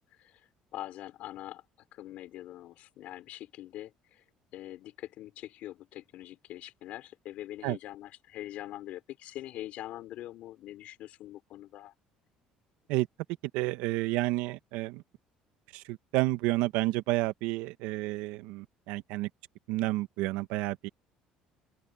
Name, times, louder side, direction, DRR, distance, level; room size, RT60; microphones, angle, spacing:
voice 1, 0.7-1.6 1.9-4.2 4.5-11.9, left 14 dB, 65° left, 4.1 m, -43 dB
voice 2, 13.5-15.0 15.7-19.3 19.7-20.9, right 18 dB, 85° right, 1.4 m, -30 dB
open air
cardioid pair, 110°, 3 cm